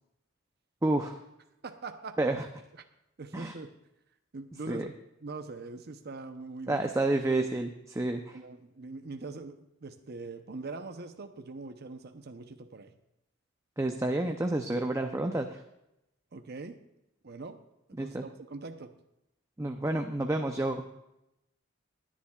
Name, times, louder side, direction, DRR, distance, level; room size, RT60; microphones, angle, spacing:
voice 1, 0.8-1.2 2.2-2.5 3.3-3.5 4.7-4.8 6.7-8.4 13.8-15.6 18.0-18.3 19.6-20.8, right 2 dB, 15° right, 5 dB, 0.6 m, -29 dB
voice 2, 1.6-2.2 3.2-3.7 4.3-4.9 5.2-6.8 8.3-12.9 16.3-16.8 17.2-17.6 17.9-18.9, right 3 dB, 55° right, 7 dB, 0.8 m, -42 dB
21.0 x 10.0 x 2.4 m, 0.87 s
head